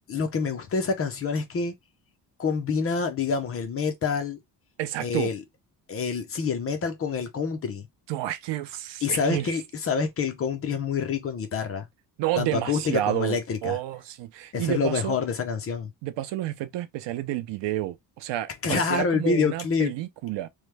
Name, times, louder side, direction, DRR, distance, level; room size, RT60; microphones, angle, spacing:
voice 1, 0.1-1.7 2.4-4.4 5.0-5.4 5.9-7.9 9.0-11.9 12.4-13.8 14.5-15.9 18.6-19.9, left 5 dB, 35° left, 0.6 m, -27 dB
voice 2, 4.8-5.3 8.1-9.5 12.2-15.2 16.0-20.5, right 14 dB, 85° right, 0.6 m, -30 dB
3.1 x 2.1 x 3.3 m
cardioid pair, 175°, 42 cm